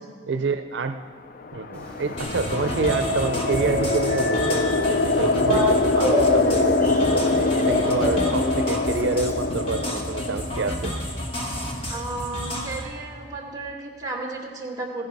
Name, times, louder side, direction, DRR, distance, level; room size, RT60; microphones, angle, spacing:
voice 1, 0.3-1.0 1.5-6.7 7.1-10.9, right 4 dB, 80° right, 8 dB, 0.5 m, -28 dB
sound 1, 1.4-11.8, left 3 dB, 50° left, 0.4 m, -24 dB
sound 2, 1.7-8.7, equal, 10° left, 3.5 m, -28 dB
sound 3, 2.2-12.8, equal, 30° left, 1.6 m, -31 dB
voice 2, 11.9-15.0, right 2 dB, 20° right, -1 dB, 2.5 m, -33 dB
15.5 x 10.5 x 5.4 m, 2.1 s
head